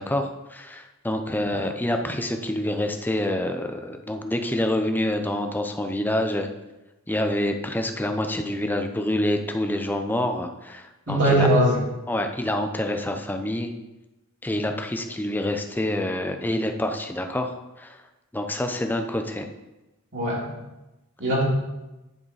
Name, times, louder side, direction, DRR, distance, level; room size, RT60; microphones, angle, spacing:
voice 1, 0.0-6.5 7.1-11.5 12.1-13.7 14.4-18.0 18.3-19.5, left 1 dB, 10° left, 5 dB, 0.6 m, -27 dB
voice 2, 11.1-11.8 20.1-20.5 21.2-21.4, right 1 dB, 55° right, -6 dB, 3.1 m, -21 dB
11.0 x 5.0 x 4.9 m, 1.0 s
head